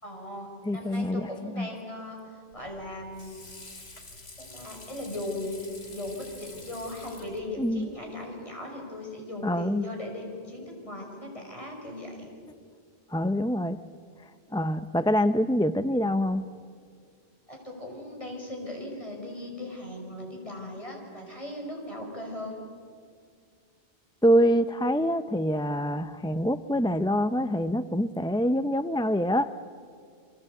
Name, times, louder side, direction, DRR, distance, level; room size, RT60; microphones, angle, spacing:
voice 1, 0.0-3.4 4.4-5.6 5.9-12.3 17.5-22.6, left 1 dB, 30° left, 1 dB, 5.7 m, -38 dB
voice 2, 0.7-1.7 7.6-7.9 9.4-9.8 13.1-13.8 14.5-16.5 24.2-29.5, equal, 5° left, 11 dB, 0.4 m, -25 dB
Water / Sink (filling or washing), 2.5-8.0, left 2 dB, 75° left, 2.9 m, -48 dB
29.0 x 24.5 x 8.2 m, 2.1 s
omnidirectional pair, 1.1 m